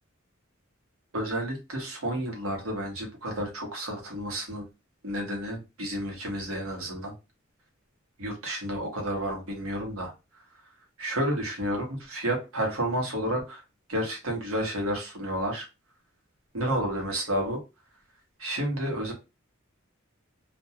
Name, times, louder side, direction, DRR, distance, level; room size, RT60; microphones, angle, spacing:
voice 1, 1.1-4.6 5.0-7.1 8.2-10.1 11.0-13.6 13.9-15.7 16.5-17.6 18.4-19.1, right 1 dB, 90° right, 1 dB, 1.1 m, -31 dB
2.6 x 2.2 x 2.7 m, 0.27 s
head